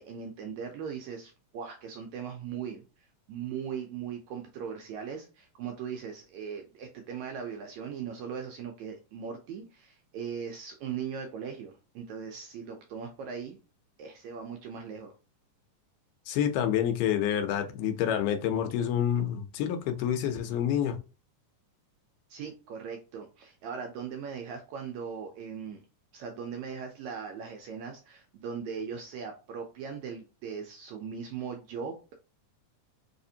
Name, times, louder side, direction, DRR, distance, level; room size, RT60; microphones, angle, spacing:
voice 1, 0.0-2.8 3.3-13.6 14.0-15.1 22.3-25.8 26.1-32.1, right 7 dB, 80° right, 1.7 m, -39 dB
voice 2, 16.3-21.0, left 9 dB, 85° left, 2.2 m, -28 dB
4.8 x 2.5 x 2.7 m
omnidirectional pair, 3.7 m